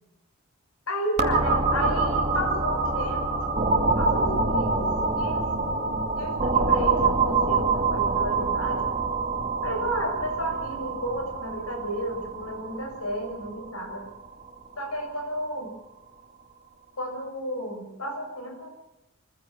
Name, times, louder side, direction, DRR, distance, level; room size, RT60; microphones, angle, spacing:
voice 1, 0.9-3.5 4.0-4.9 5.2-5.5 6.2-8.8 9.6-14.1 14.8-15.7 17.0-18.8, equal, 80° left, 4 dB, 7.1 m, -32 dB
sound 1, 1.2-14.7, right 3 dB, 30° right, 2.5 m, -26 dB
24.5 x 15.5 x 7.4 m, 0.91 s
head